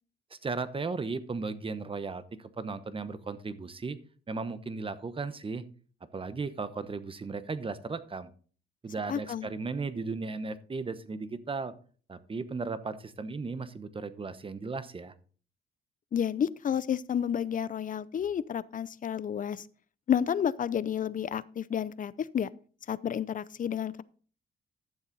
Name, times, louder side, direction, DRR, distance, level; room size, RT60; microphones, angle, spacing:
voice 1, 0.3-4.0 4.3-5.6 6.1-8.3 8.8-11.7 12.1-15.1, right 4 dB, 25° right, 13 dB, 1.0 m, -36 dB
voice 2, 9.1-9.5 16.1-19.6 20.1-22.5 22.9-24.0, left 8 dB, 40° left, 19 dB, 0.5 m, -30 dB
12.0 x 7.3 x 4.0 m, 0.42 s
cardioid pair, 90°, 20 cm